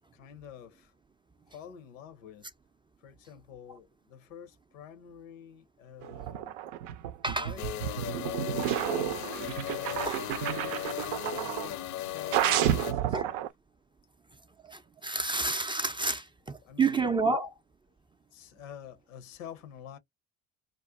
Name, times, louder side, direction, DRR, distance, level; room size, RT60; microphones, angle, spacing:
voice 1, 0.1-0.9 1.5-2.5 3.0-6.6 7.4-8.2 9.0-10.3 10.8-13.5 16.6-17.4 18.3-20.0, left 9 dB, 85° left, 0.7 m, -49 dB
sound 1, 6.0-11.8 12.3-13.5, right 12 dB, 70° right, 0.5 m, -31 dB
voice 2, 7.2-7.5 10.0-10.2 13.1-13.3 14.6-17.5, right 3 dB, 15° right, 0.4 m, -29 dB
sound 2, 7.6-12.9, left 12 dB, 50° left, 0.5 m, -37 dB
2.4 x 2.1 x 3.6 m
hypercardioid pair, 65°, 38 cm